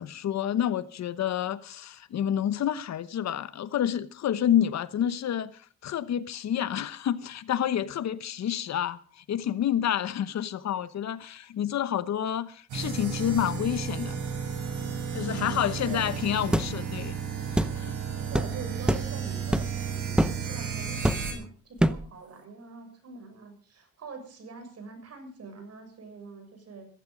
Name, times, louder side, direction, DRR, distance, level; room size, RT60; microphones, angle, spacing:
voice 1, 0.0-14.2 15.1-17.2 17.5-17.9, left 10 dB, 60° left, 1.1 m, -29 dB
sound 1, 12.7-21.3, right 6 dB, 80° right, 7.6 m, -33 dB
voice 2, 15.1-16.3 18.3-26.9, right 4 dB, 55° right, 6.8 m, -44 dB
sound 2, 16.5-16.7 17.6-17.8 18.3-18.5 18.9-19.1 19.5-19.8 20.2-20.4 21.0-21.4 21.8-22.1, equal, 5° right, 0.8 m, -25 dB
15.5 x 15.0 x 5.2 m
cardioid pair, 90°, 30 cm